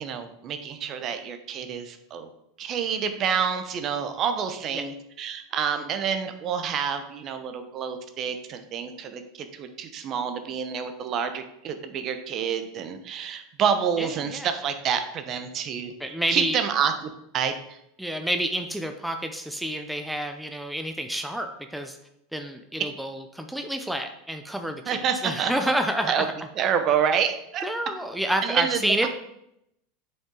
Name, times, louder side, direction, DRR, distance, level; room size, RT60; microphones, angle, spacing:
voice 1, 0.0-2.3 2.6-17.8 24.9-25.7 26.0-26.3 26.5-27.7 28.4-29.1, right 7 dB, 45° right, 8 dB, 0.9 m, -28 dB
voice 2, 14.0-14.5 16.0-16.6 18.0-22.0 22.3-26.3 27.6-29.1, right 1 dB, ahead, 5 dB, 0.7 m, -29 dB
7.3 x 5.5 x 3.9 m, 0.79 s
hypercardioid pair, 95°, 0 cm